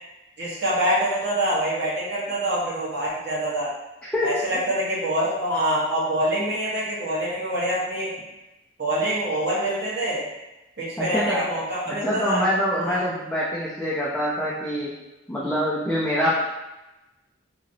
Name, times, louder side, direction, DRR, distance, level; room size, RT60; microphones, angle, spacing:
voice 1, 0.4-3.7 4.2-8.1 8.8-10.3 10.8-12.4 12.8-13.0, right 1 dB, 65° right, -7 dB, 1.1 m, -25 dB
voice 2, 4.0-4.4 11.0-11.5 11.9-14.9 15.3-16.3, equal, 5° left, -9 dB, 0.5 m, -25 dB
2.9 x 2.7 x 2.7 m, 0.99 s
head